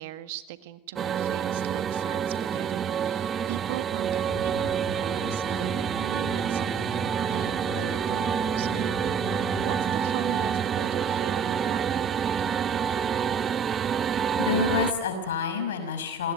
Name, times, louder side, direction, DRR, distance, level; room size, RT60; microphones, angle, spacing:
voice 1, 0.0-11.9, right 15 dB, 60° right, 11 dB, 1.7 m, -39 dB
sound 1, 1.0-14.9, right 8 dB, 30° right, 1.2 m, -27 dB
sound 2, 4.3-9.9, left 6 dB, 20° left, 3.9 m, -39 dB
voice 2, 14.4-16.3, left 6 dB, 70° left, 8 dB, 5.9 m, -28 dB
28.0 x 20.0 x 9.5 m, 0.99 s
hypercardioid pair, 90°, 0 cm